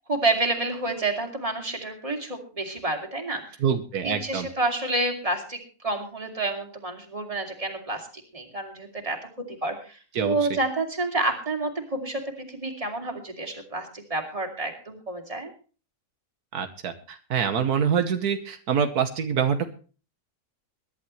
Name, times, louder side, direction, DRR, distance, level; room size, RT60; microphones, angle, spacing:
voice 1, 0.1-3.4 4.0-5.6 5.8-8.0 8.3-9.2 9.6-12.2 12.5-15.5, right 2 dB, 20° right, 3 dB, 2.7 m, -29 dB
voice 2, 3.6-4.5 10.1-10.4 16.5-19.7, right 7 dB, 85° right, 8 dB, 1.6 m, -25 dB
22.5 x 11.5 x 3.2 m, 0.36 s
omnidirectional pair, 1.6 m